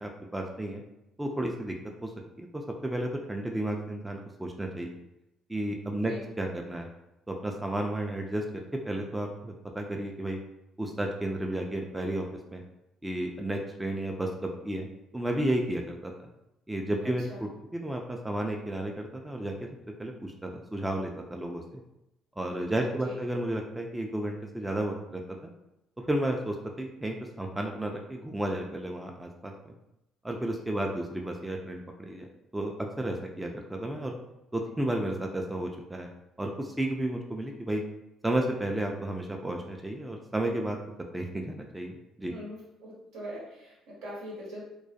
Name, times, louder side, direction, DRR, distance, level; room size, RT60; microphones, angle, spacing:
voice 1, 0.0-0.8 1.2-1.7 2.0-2.1 2.4-4.9 5.5-6.9 7.3-8.4 8.8-10.4 10.8-12.6 13.0-14.9 15.1-16.1 16.7-19.7 20.0-21.8 22.4-25.5 26.0-29.5 30.2-32.3 32.5-34.2 34.5-36.1 36.4-37.8 38.2-40.8 41.1-42.3, right 1 dB, 10° right, 2 dB, 0.3 m, -32 dB
voice 2, 5.9-6.2 17.3-17.4 22.8-23.2 30.8-31.0 42.2-44.6, equal, 75° right, -5 dB, 0.9 m, -43 dB
2.2 x 2.1 x 2.6 m, 0.90 s
hypercardioid pair, 55°, 0 cm